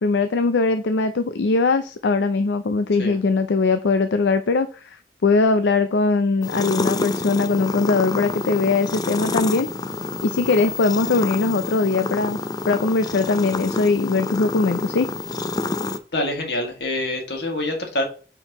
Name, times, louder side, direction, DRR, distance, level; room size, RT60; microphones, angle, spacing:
voice 1, 0.0-5.0 5.2-9.7 10.2-12.4 12.7-15.1, left 3 dB, 90° left, 9 dB, 0.5 m, -21 dB
sound 1, 6.4-16.0, left 3 dB, 20° left, 0.4 m, -28 dB
voice 2, 16.1-18.0, left 1 dB, 70° left, 2 dB, 2.0 m, -25 dB
8.7 x 4.6 x 2.9 m, 0.38 s
head